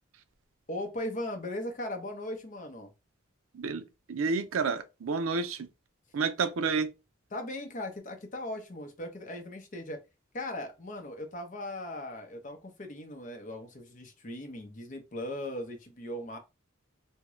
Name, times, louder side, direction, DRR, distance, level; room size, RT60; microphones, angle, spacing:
voice 1, 0.7-2.9 7.3-10.0 10.3-16.4, left 1 dB, 40° left, 0.7 m, -38 dB
voice 2, 3.5-5.7 6.1-6.9, right 4 dB, 85° right, 0.5 m, -30 dB
3.6 x 2.2 x 3.0 m
head